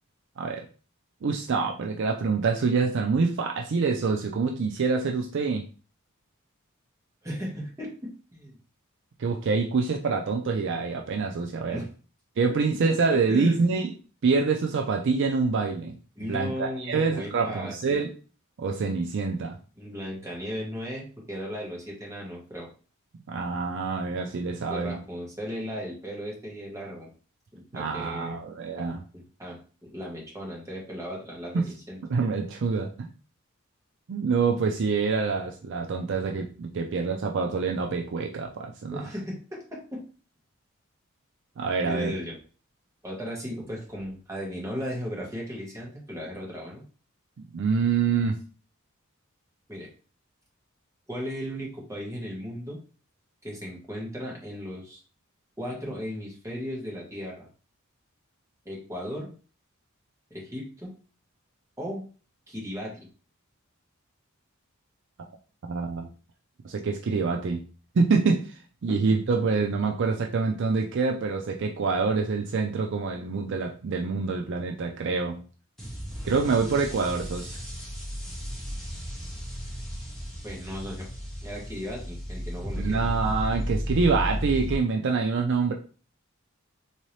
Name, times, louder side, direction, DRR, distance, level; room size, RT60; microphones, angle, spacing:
voice 1, 1.2-5.6 9.2-11.8 12.4-13.9 14.2-15.9 16.2-18.1 18.6-19.6 23.3-25.0 27.7-29.0 31.5-31.7 32.1-33.1 34.1-39.0 41.6-42.2 47.4-48.3 65.6-66.1 66.6-67.6 68.0-68.5 68.8-75.4 76.2-77.6 82.8-85.7, right 4 dB, 60° right, 2 dB, 0.4 m, -26 dB
voice 2, 7.2-8.6 11.7-11.9 13.3-13.6 16.2-18.0 19.8-22.7 24.7-27.1 27.5-28.4 28.8-28.9 29.4-29.6 29.9-32.0 38.9-40.0 41.8-42.4 43.0-46.8 49.7-49.9 51.1-52.8 53.4-55.0 55.6-57.5 58.6-59.3 60.3-60.9 61.8-62.0 62.5-63.0 68.9-69.0 80.4-81.0 81.4-83.0, equal, 15° right, -3 dB, 1.3 m, -36 dB
sound 1, 75.8-84.7, equal, ahead, 1.0 m, -34 dB
3.7 x 2.8 x 3.2 m, 0.37 s
head